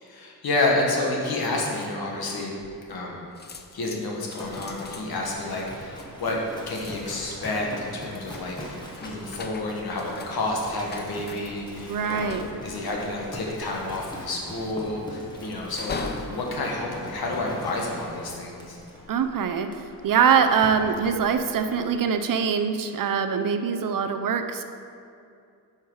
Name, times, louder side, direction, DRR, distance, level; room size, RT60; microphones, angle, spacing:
voice 1, 0.0-2.6 2.9-3.2 3.7-16.0 16.3-18.8, left 2 dB, 65° left, -1 dB, 1.6 m, -29 dB
sound 1, 2.6-3.1 3.3-17.9 18.5-18.9, left 4 dB, 25° left, 0.4 m, -42 dB
Livestock farm animals working animals, 4.4-22.0, left 1 dB, 10° left, 1.2 m, -42 dB
voice 2, 11.9-12.4 19.1-24.6, right 6 dB, 55° right, 8 dB, 0.5 m, -23 dB
9.3 x 5.9 x 4.7 m, 2.4 s
wide cardioid pair, 155°, 39 cm